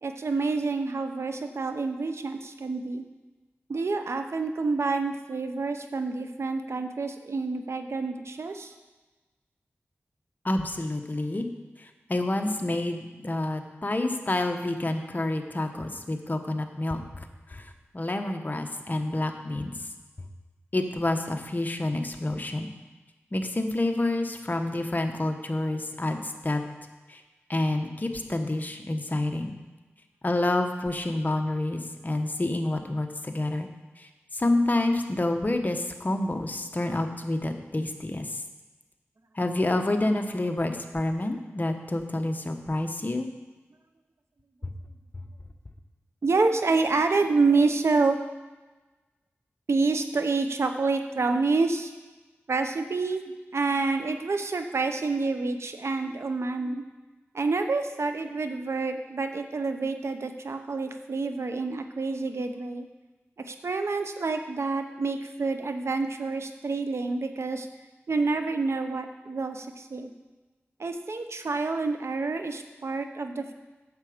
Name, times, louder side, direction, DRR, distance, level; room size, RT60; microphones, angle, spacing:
voice 1, 0.0-3.0 3.7-8.7 46.2-48.2 49.7-51.9 52.5-53.2 53.5-56.8 57.3-62.8 63.5-67.7 68.1-70.1 70.8-73.5, right 3 dB, 70° right, 7 dB, 0.8 m, -28 dB
voice 2, 10.4-11.5 11.8-19.9 20.7-22.7 23.3-26.6 27.1-27.2 27.5-29.6 30.2-33.7 34.0-38.4 39.3-43.3 44.6-44.7, left 2 dB, 35° left, 5 dB, 1.0 m, -28 dB
9.6 x 6.9 x 5.0 m, 1.2 s
cardioid pair, 50°, 5 cm